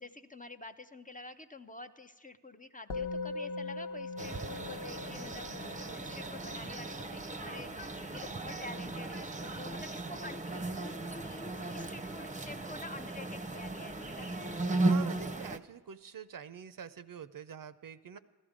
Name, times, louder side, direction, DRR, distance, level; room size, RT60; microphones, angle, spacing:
voice 1, 0.0-14.4, left 2 dB, 20° left, 8 dB, 0.5 m, -48 dB
Musical instrument, 2.9-12.4, left 3 dB, 80° left, 0.8 m, -44 dB
sound 1, 4.2-15.6, right 2 dB, 20° right, 0.6 m, -36 dB
voice 2, 14.8-18.2, right 7 dB, 60° right, 12 dB, 0.6 m, -46 dB
15.0 x 13.0 x 5.1 m, 1.4 s
cardioid pair, 55°, 39 cm